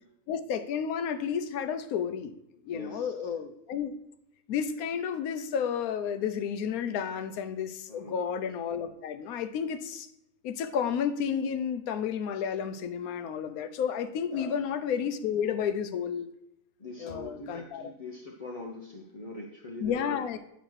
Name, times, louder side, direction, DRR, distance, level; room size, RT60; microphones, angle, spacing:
voice 1, 0.3-2.3 2.6-3.9 4.5-10.1 10.4-16.3 17.0-17.9 19.8-20.4, left 7 dB, 75° left, 11 dB, 1.0 m, -31 dB
voice 2, 2.7-3.1 7.9-8.2 14.3-14.5 16.8-20.2, left 2 dB, 50° left, -1 dB, 0.4 m, -42 dB
8.2 x 3.0 x 6.2 m, 0.78 s
omnidirectional pair, 1.6 m